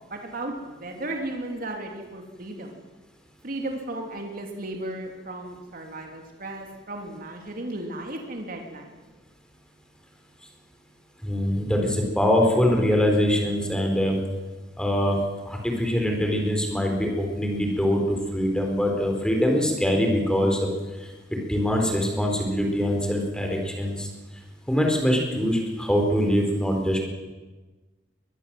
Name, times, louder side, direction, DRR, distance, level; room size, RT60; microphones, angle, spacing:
voice 1, 0.1-2.8 3.4-9.0, right 1 dB, 50° right, 3 dB, 2.8 m, -35 dB
voice 2, 11.2-14.2 14.8-15.2 15.5-20.7 21.3-24.1 24.7-27.0, equal, 5° left, 1 dB, 4.3 m, -23 dB
23.0 x 20.0 x 7.6 m, 1.2 s
head